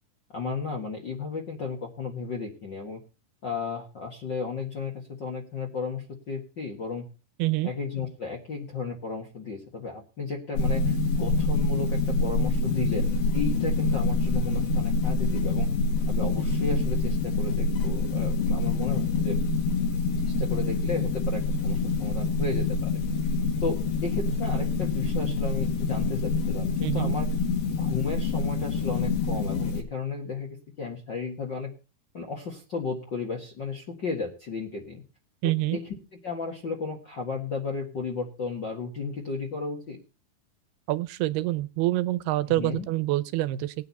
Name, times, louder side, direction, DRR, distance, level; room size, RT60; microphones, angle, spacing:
voice 1, 0.3-3.0 3.4-4.9 5.2-7.0 7.6-15.7 16.1-19.4 20.2-23.0 23.6-27.3 27.7-31.7 32.1-35.0 35.4-35.8 36.1-40.0 42.5-42.9, left 4 dB, 45° left, 0 dB, 1.5 m, -34 dB
sound 1, 10.6-29.8, left 3 dB, 75° left, 4.1 m, -26 dB
voice 2, 26.8-27.1 35.4-35.8 40.9-43.8, right 17 dB, 85° right, 15 dB, 2.7 m, -26 dB
19.0 x 8.9 x 4.1 m, 0.32 s
omnidirectional pair, 4.5 m